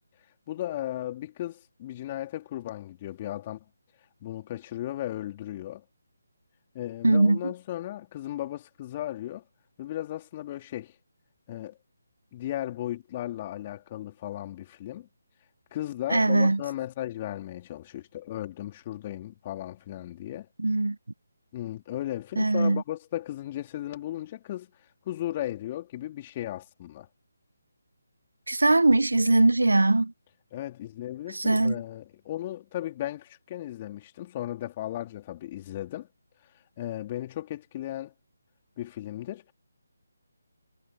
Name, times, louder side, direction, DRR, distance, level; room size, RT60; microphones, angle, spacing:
voice 1, 0.5-3.6 4.2-5.8 6.7-9.4 9.8-11.0 11.5-11.8 12.3-15.1 15.7-20.5 21.5-24.7 25.1-27.1 30.5-36.1 36.8-38.1 38.8-39.5, left 13 dB, 30° left, 3.4 m, -36 dB
voice 2, 7.0-7.5 16.1-16.6 20.6-21.0 22.4-22.8 28.5-30.1 31.3-31.7, right 2 dB, 80° right, 0.9 m, -21 dB
figure-of-eight pair, 155°, 0 cm